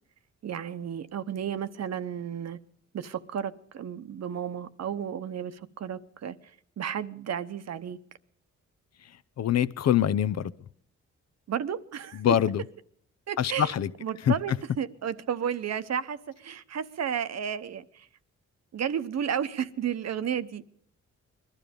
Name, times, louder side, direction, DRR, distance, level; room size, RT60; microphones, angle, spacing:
voice 1, 0.4-2.6 2.9-6.4 6.8-8.0 11.5-12.2 13.3-13.7 14.0-18.1 18.7-20.6, right 8 dB, 60° right, 13 dB, 0.9 m, -32 dB
voice 2, 9.4-10.5 12.1-12.6 13.4-13.9 14.2-14.6, left 10 dB, 60° left, 14 dB, 0.6 m, -24 dB
21.0 x 12.5 x 5.2 m, 0.64 s
cardioid pair, 95°, 29 cm